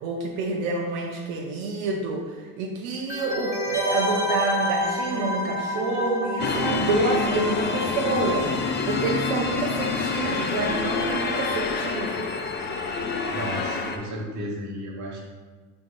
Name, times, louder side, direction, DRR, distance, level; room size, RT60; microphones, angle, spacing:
voice 1, 0.0-8.5 8.9-12.3, right 3 dB, 90° right, -1 dB, 0.6 m, -28 dB
sound 1, 3.1-8.6 8.8-8.9, equal, 10° right, 0.8 m, -29 dB
sound 2, 6.4-14.0, left 4 dB, 30° left, 0.4 m, -27 dB
voice 2, 13.3-15.2, equal, 45° right, -2 dB, 1.4 m, -33 dB
4.8 x 4.3 x 2.5 m, 1.4 s
supercardioid pair, 90°, 40 cm